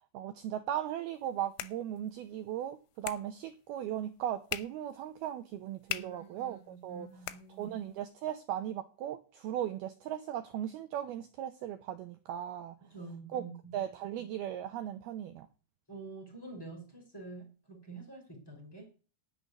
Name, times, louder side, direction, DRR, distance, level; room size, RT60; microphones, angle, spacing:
voice 1, 0.1-7.1 7.6-12.7 13.3-13.5 13.7-15.5, right 11 dB, 85° right, 2.2 m, -37 dB
sound 1, 1.0-8.1, left 15 dB, 80° left, 3.1 m, -45 dB
voice 2, 5.9-7.8 12.9-13.8 15.9-18.9, right 3 dB, 5° left, 4.4 m, -47 dB
11.0 x 6.8 x 9.5 m
omnidirectional pair, 5.6 m